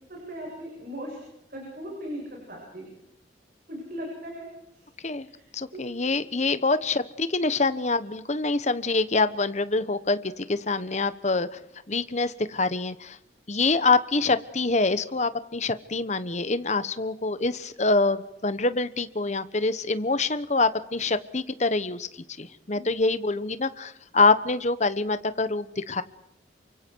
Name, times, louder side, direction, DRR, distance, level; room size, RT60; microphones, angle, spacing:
voice 1, 0.1-1.2 1.5-2.9 3.7-4.5 4.7-4.8 5.2-5.4 5.7-5.8 22.7-22.8, equal, 50° right, -2 dB, 7.6 m, -38 dB
voice 2, 5.5-11.6 11.9-13.2 13.5-22.1 22.4-26.0, left 3 dB, 40° left, 13 dB, 1.2 m, -25 dB
29.0 x 24.5 x 4.7 m, 0.84 s
head